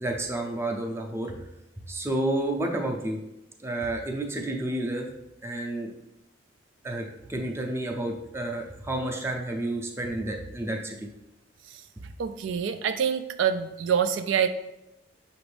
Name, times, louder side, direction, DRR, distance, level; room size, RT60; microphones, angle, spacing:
voice 1, 0.0-1.3 1.9-3.2 3.6-5.1 5.4-5.9 6.8-11.1 12.0-12.1, right 1 dB, 15° right, 1 dB, 0.5 m, -30 dB
voice 2, 12.2-14.5, right 7 dB, 80° right, 9 dB, 0.3 m, -26 dB
6.0 x 2.5 x 3.3 m, 0.90 s
head